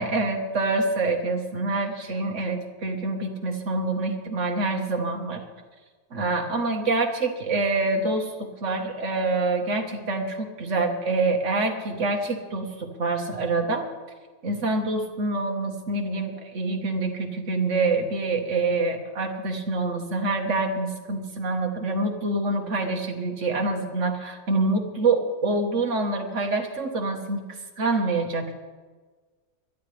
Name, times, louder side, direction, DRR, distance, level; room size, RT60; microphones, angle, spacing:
voice 1, 0.0-5.4 6.1-13.8 14.4-27.4 27.8-28.6, right 3 dB, 55° right, 3 dB, 1.8 m, -26 dB
21.5 x 13.0 x 3.4 m, 1.4 s
omnidirectional pair, 1.5 m